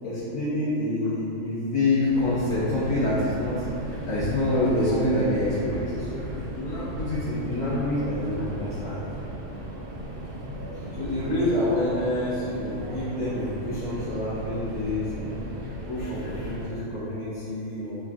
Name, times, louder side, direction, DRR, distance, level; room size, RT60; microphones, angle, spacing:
voice 1, 0.0-6.2 6.5-9.0 11.0-15.4 15.8-18.0, left 1 dB, 85° left, -14 dB, 1.2 m, -27 dB
Subway metro underground, 2.0-16.8, equal, 60° right, 0.6 m, -36 dB
voice 2, 9.9-11.4 16.0-16.5, left 2 dB, 70° left, -13 dB, 1.5 m, -49 dB
3.5 x 2.5 x 2.3 m, 2.9 s
omnidirectional pair, 1.4 m